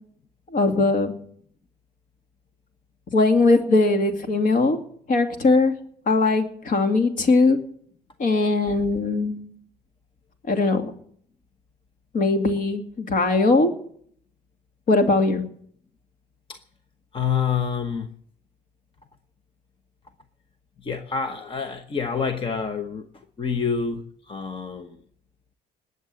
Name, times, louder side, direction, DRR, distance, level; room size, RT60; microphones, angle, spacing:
voice 1, 0.5-1.1 3.1-4.8 5.1-5.7 6.1-7.6 8.2-9.4 10.5-10.9 12.1-13.7 14.9-15.4, left 3 dB, 50° left, 6 dB, 2.4 m, -20 dB
voice 2, 17.1-18.1 20.8-23.1 23.4-25.0, left 6 dB, 30° left, 8 dB, 1.1 m, -27 dB
20.0 x 8.1 x 7.7 m, 0.64 s
cardioid pair, 110°, 17 cm